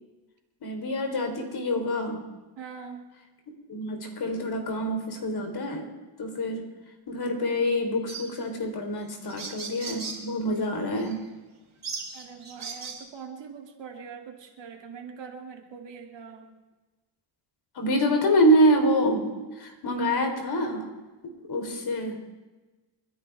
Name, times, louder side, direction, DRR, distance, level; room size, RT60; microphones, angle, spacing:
voice 1, 0.6-2.2 3.7-5.9 6.2-6.6 7.1-11.2 17.8-20.9 21.5-22.2, equal, 50° left, 3 dB, 3.8 m, -26 dB
voice 2, 2.6-3.1 12.1-16.5, right 6 dB, 65° right, 2 dB, 2.5 m, -43 dB
sound 1, 8.1-8.3 9.0-9.1 9.3-10.2 11.0-11.1 11.8-13.0, right 4 dB, 35° right, 3.6 m, -37 dB
29.5 x 10.5 x 3.5 m, 1.2 s
cardioid pair, 90°, 47 cm